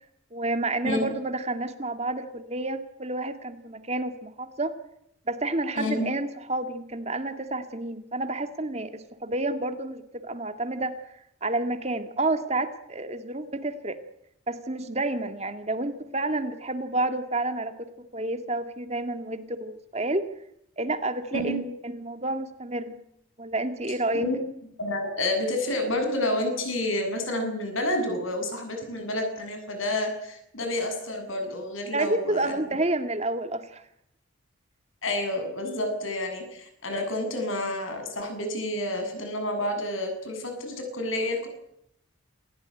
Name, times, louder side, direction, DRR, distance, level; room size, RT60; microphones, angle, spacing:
voice 1, 0.3-4.7 5.3-14.0 14.5-17.9 18.1-20.2 20.8-23.0 23.4-24.3 31.9-33.8, right 2 dB, 30° right, 8 dB, 2.0 m, -30 dB
voice 2, 5.7-6.1 21.3-21.6 24.2-24.4 24.8-32.6 35.0-41.5, left 1 dB, 80° left, 5 dB, 7.9 m, -29 dB
28.5 x 16.5 x 9.9 m, 0.76 s
head